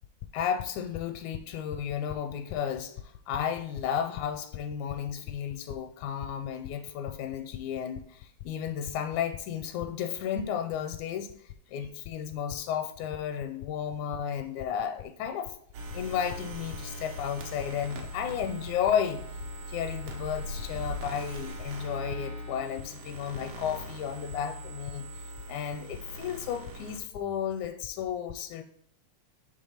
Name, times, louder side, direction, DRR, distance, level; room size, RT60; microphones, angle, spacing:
voice 1, 0.3-11.3 11.7-15.5 15.9-19.2 19.7-28.6, left 8 dB, 85° left, 1.9 m, -33 dB
sound 1, 15.7-27.0, equal, 80° right, 2.4 m, -40 dB
5.2 x 3.6 x 5.6 m
omnidirectional pair, 3.3 m